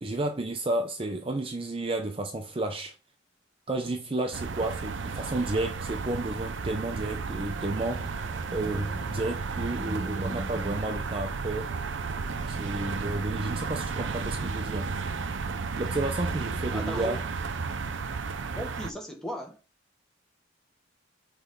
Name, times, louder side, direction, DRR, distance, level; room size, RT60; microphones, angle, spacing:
voice 1, 0.0-3.0 3.7-8.1 8.5-11.7 12.5-14.9 15.8-17.2, right 2 dB, 30° right, 0.5 m, -31 dB
sound 1, 4.3-18.9, right 4 dB, 75° right, 0.5 m, -33 dB
sound 2, 7.4-11.9, right 1 dB, 35° left, 2.5 m, -48 dB
voice 2, 16.5-17.1 18.6-19.6, equal, 5° left, 1.2 m, -37 dB
6.0 x 3.2 x 5.3 m
head